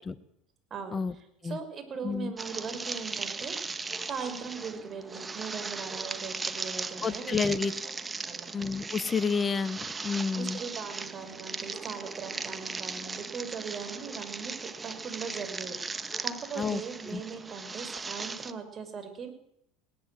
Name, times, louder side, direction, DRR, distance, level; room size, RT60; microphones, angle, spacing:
voice 1, 1.4-3.8 4.1-7.5 7.8-7.9 8.3-8.5 10.3-19.3, right 5 dB, 40° right, 8 dB, 5.8 m, -39 dB
sound 1, 2.4-18.5, right 4 dB, 20° right, 1.6 m, -38 dB
voice 2, 7.0-7.7 8.5-10.6 16.6-16.8 17.0-17.2, left 5 dB, 25° left, 12 dB, 1.5 m, -30 dB
20.0 x 19.0 x 7.9 m, 0.76 s
hypercardioid pair, 80°, 0 cm